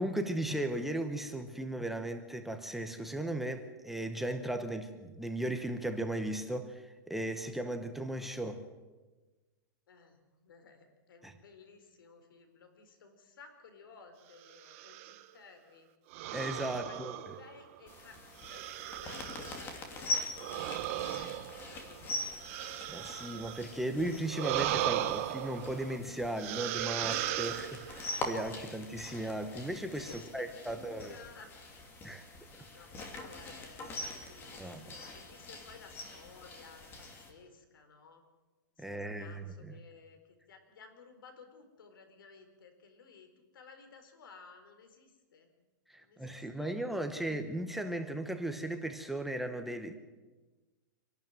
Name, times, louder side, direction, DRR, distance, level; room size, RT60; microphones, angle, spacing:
voice 1, 0.0-8.7 11.2-11.3 16.3-17.1 22.9-31.1 32.0-32.2 34.6-34.9 38.8-39.7 45.9-50.0, right 1 dB, ahead, 6 dB, 0.9 m, -36 dB
voice 2, 9.9-15.9 16.7-18.2 18.4-21.2 21.6-22.4 30.0-31.5 32.7-38.2 38.8-45.5 46.0-47.2, left 5 dB, 80° left, 7 dB, 4.4 m, -56 dB
sound 1, 14.5-15.2 16.1-17.8 18.4-19.7 20.4-23.7 24.3-26.0 26.4-28.1, right 14 dB, 40° right, 1.0 m, -37 dB
sound 2, 17.9-37.3, left 2 dB, 20° left, 2.6 m, -43 dB
25.5 x 12.0 x 9.2 m, 1.2 s
supercardioid pair, 165°, 11 cm